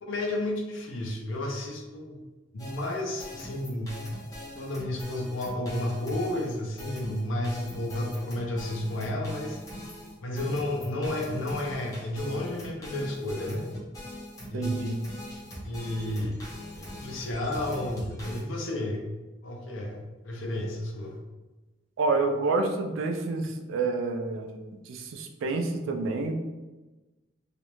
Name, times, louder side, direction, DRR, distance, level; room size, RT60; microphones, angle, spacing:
voice 1, 0.0-2.2 2.5-4.0 4.6-9.6 10.2-13.7 14.5-14.7 15.6-16.4 16.8-19.0 19.4-21.2, left 1 dB, 85° left, 1 dB, 0.5 m, -32 dB
sound 1, 2.6-18.4, left 1 dB, 20° left, 0.5 m, -42 dB
voice 2, 14.5-15.0 22.0-26.3, right 3 dB, 90° right, 4 dB, 0.4 m, -29 dB
2.4 x 2.1 x 2.9 m, 1.2 s
head